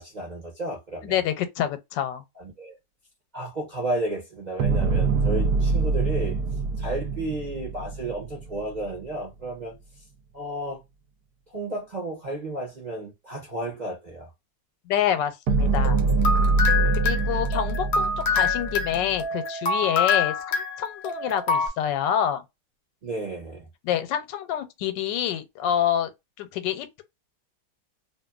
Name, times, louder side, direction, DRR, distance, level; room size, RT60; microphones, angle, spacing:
voice 1, 0.0-1.2 2.4-2.8 3.3-6.3 6.8-9.7 10.3-10.8 11.5-14.3 16.8-17.0 23.0-23.7, right 1 dB, 40° right, 0.6 m, -33 dB
voice 2, 1.0-2.2 14.9-16.0 16.9-22.4 23.8-26.1 26.4-27.0, left 10 dB, 90° left, 1.3 m, -27 dB
sound 1, 4.6-8.9 15.5-19.2, right 3 dB, 70° right, 1.0 m, -24 dB
sound 2, 15.8-21.7, left 4 dB, 60° left, 0.6 m, -26 dB
2.7 x 2.5 x 2.2 m
omnidirectional pair, 1.9 m